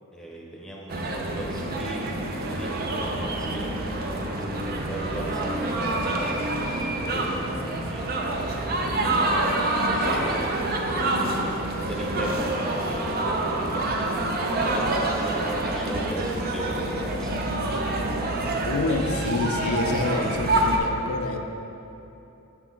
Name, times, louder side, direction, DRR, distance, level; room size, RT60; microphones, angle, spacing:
voice 1, 0.1-6.4 6.7-11.6 11.9-12.5 12.8-14.0 14.4-17.6 17.8-17.9, right 1 dB, 5° left, -3 dB, 0.8 m, -39 dB
sound 1, 0.9-20.8, right 2 dB, 45° right, 0.5 m, -27 dB
voice 2, 18.6-21.4, left 3 dB, 80° left, 5 dB, 0.5 m, -27 dB
6.4 x 5.8 x 3.7 m, 2.9 s
head